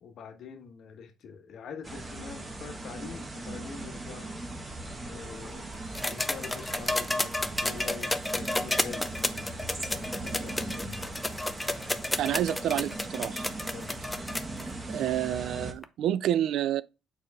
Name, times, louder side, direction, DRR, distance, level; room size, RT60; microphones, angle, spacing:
voice 1, 0.0-4.3 5.1-5.7 6.0-11.2 12.2-12.4 13.7-13.9, left 6 dB, 70° left, 1.2 m, -45 dB
sound 1, 1.8-15.7, right 2 dB, 25° right, 1.4 m, -39 dB
sound 2, 5.9-14.6 15.8-15.9, left 1 dB, 10° left, 0.6 m, -31 dB
voice 2, 12.2-13.5 14.6-16.8, right 11 dB, 80° right, 0.3 m, -29 dB
6.5 x 4.8 x 3.5 m
cardioid pair, 90°, 0 cm